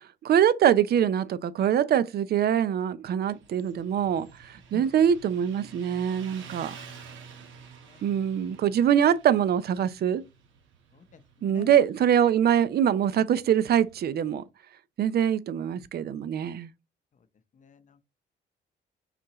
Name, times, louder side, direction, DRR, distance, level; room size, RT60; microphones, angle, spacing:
voice 1, 0.2-6.7 8.0-10.2 11.4-14.4 15.0-16.7, right 9 dB, 55° right, 0.5 m, -24 dB
Motorcycle, 3.2-14.3, right 6 dB, 75° right, 0.9 m, -50 dB
voice 2, 7.8-8.5 10.9-11.7 17.5-18.0, left 6 dB, 40° left, 0.7 m, -47 dB
5.8 x 2.4 x 2.9 m
cardioid pair, 90°, 20 cm